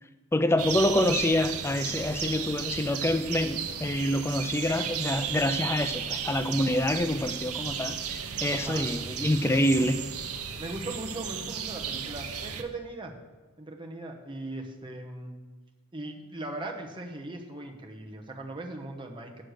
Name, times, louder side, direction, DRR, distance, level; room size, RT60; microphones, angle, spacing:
voice 1, 0.3-10.0, left 1 dB, 10° left, 9 dB, 0.3 m, -26 dB
sound 1, 0.6-12.6, right 7 dB, 85° right, 0.8 m, -34 dB
voice 2, 8.5-8.9 10.6-13.2 13.6-15.4 15.9-19.4, right 2 dB, 20° right, 2 dB, 1.0 m, -39 dB
7.4 x 6.5 x 6.4 m, 1.2 s
head